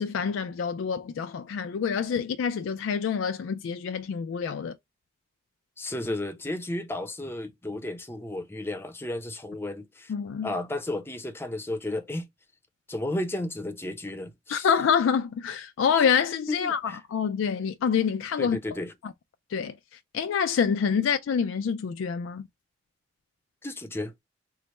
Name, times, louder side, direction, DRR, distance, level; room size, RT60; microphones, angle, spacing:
voice 1, 0.0-4.8 10.1-10.5 14.5-18.6 19.0-19.1 19.5-19.7 20.1-22.5, left 7 dB, 90° left, 0.3 m, -26 dB
voice 2, 5.8-10.1 10.4-12.2 12.9-14.7 16.5-17.0 18.4-18.9 23.6-24.1, left 1 dB, 10° left, 0.5 m, -33 dB
3.2 x 2.0 x 4.1 m
head